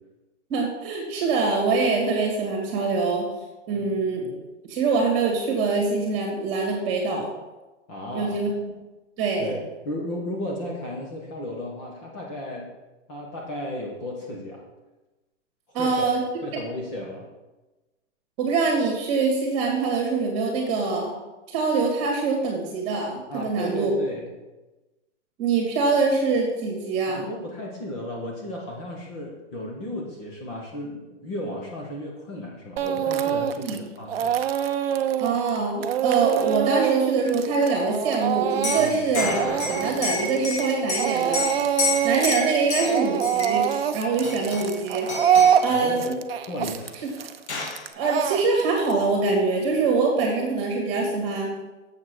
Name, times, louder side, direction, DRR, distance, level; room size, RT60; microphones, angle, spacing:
voice 1, 0.5-3.3 3.7-4.3 4.7-7.3 8.1-8.5 9.2-9.5 15.7-16.2 18.4-21.1 21.5-23.9 25.4-27.2 33.6-33.9 35.2-41.5 42.0-45.1 45.6-46.1 47.9-51.5, right 4 dB, 25° right, 0 dB, 2.2 m, -24 dB
voice 2, 7.9-8.4 9.4-12.7 13.1-14.6 15.8-16.1 16.4-17.3 23.3-24.3 27.1-34.4 38.8-39.0 45.7-46.2 46.5-46.9, left 1 dB, 25° left, -2 dB, 1.3 m, -34 dB
Speech / Crying sobbing, 32.8-33.8 34.1-40.7 41.0-42.4 42.7-48.9, right 9 dB, 50° right, 0.7 m, -24 dB
Liquid, 38.5-43.8 44.2-44.8 45.1-45.7 46.8-46.9 47.2-47.8, left 3 dB, 60° left, 2.0 m, -30 dB
sound 1, 39.2-41.1, left 2 dB, 80° left, 2.0 m, -36 dB
7.4 x 5.8 x 6.3 m, 1.1 s
hypercardioid pair, 160°, 37 cm